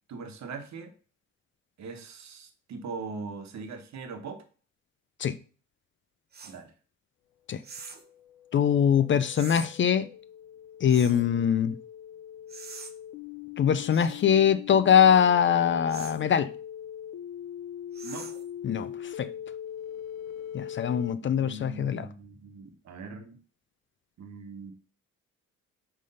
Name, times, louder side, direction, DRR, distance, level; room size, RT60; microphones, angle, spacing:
voice 1, 0.1-0.9 1.8-4.4 6.4-6.7 18.0-18.3 21.2-23.4 24.2-24.7, right 4 dB, 65° right, 1.2 m, -40 dB
sound 1, 6.3-6.6 7.6-8.1 9.3-9.7 10.9-11.3 12.5-12.9 13.9-14.2 15.9-16.2 17.9-18.5, right 5 dB, 30° right, 0.8 m, -44 dB
sound 2, 7.9-21.1, left 10 dB, 90° left, 0.6 m, -42 dB
voice 2, 8.5-10.1 10.8-11.7 13.6-16.5 18.6-18.9 19.2-19.3 20.5-22.0, left 8 dB, 40° left, 0.4 m, -22 dB
5.4 x 3.4 x 5.4 m
cardioid pair, 90°, 30 cm